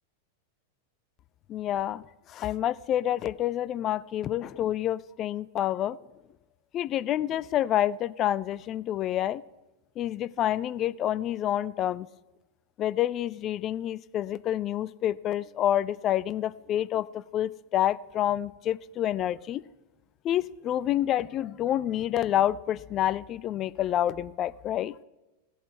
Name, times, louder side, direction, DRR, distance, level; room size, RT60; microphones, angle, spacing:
voice 1, 1.5-2.0 2.3-6.0 6.7-9.4 10.0-12.1 12.8-19.6 20.2-24.9, left 12 dB, 30° left, 17 dB, 0.4 m, -28 dB
17.5 x 7.9 x 3.2 m, 1.0 s
figure-of-eight pair, 90°, 0 cm